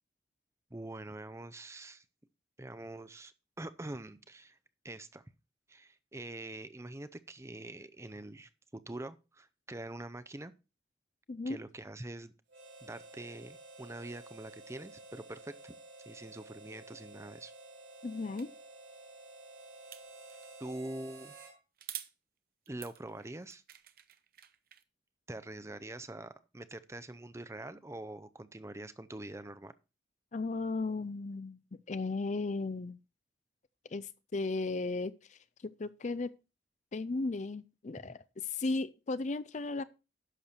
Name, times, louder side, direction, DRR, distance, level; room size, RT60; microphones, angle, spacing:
voice 1, 0.7-2.0 2.6-4.6 4.8-5.2 5.7-10.5 11.5-12.3 12.8-15.7 16.1-17.5 20.6-21.3 22.7-23.6 25.3-29.7 38.0-38.1, right 2 dB, 15° right, 0.6 m, -45 dB
voice 2, 11.3-11.6 18.0-18.5 30.3-33.0 33.9-36.3 36.9-38.2 38.5-39.8, left 3 dB, 40° left, 0.5 m, -35 dB
Harmonica, 12.5-21.6, right 2 dB, 85° right, 3.6 m, -52 dB
sound 1, 18.4-18.5 19.9-20.5 21.8-22.1 22.7-24.8, right 12 dB, 55° right, 0.8 m, -47 dB
11.0 x 6.7 x 4.4 m
head